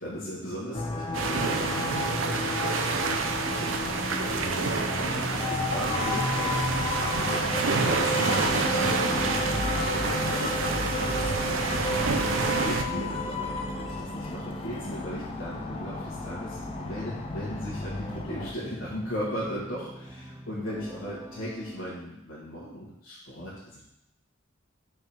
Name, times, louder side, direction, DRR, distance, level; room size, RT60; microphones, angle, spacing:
voice 1, 0.0-2.0 2.2-3.8 4.2-23.8, equal, 85° left, -9 dB, 1.7 m, -38 dB
sound 1, 0.7-18.5, left 2 dB, 30° left, 0.6 m, -31 dB
sound 2, 1.1-12.8, right 4 dB, 70° right, 0.5 m, -28 dB
sound 3, 10.6-22.0, equal, 15° right, 0.5 m, -45 dB
5.6 x 3.8 x 4.4 m, 0.81 s
head